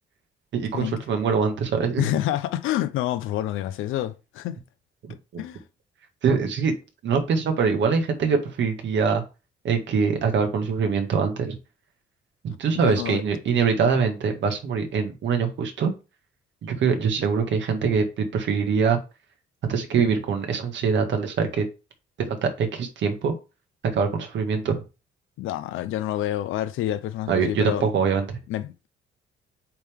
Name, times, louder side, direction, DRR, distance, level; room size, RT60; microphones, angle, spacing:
voice 1, 0.5-2.1 5.0-5.4 6.2-6.7 7.0-9.2 9.6-11.6 12.4-15.9 16.6-19.0 19.6-21.7 22.2-23.3 23.9-24.8 27.3-28.4, right 5 dB, 65° right, 1.8 m, -23 dB
voice 2, 2.0-4.6 5.4-5.6 12.7-13.2 25.4-27.9 28.5-28.9, left 13 dB, 90° left, 0.7 m, -28 dB
8.0 x 3.6 x 3.6 m
cardioid pair, 90°, 20 cm